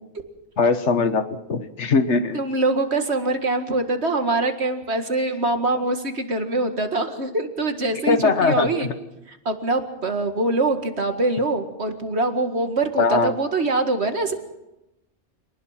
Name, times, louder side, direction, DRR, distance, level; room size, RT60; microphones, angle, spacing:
voice 1, 0.6-2.4 8.1-8.7 13.0-13.3, left 4 dB, 85° left, 10 dB, 1.7 m, -20 dB
voice 2, 2.3-8.9 9.3-14.3, right 2 dB, 70° right, 6 dB, 2.3 m, -24 dB
26.5 x 19.5 x 5.9 m, 0.94 s
omnidirectional pair, 1.2 m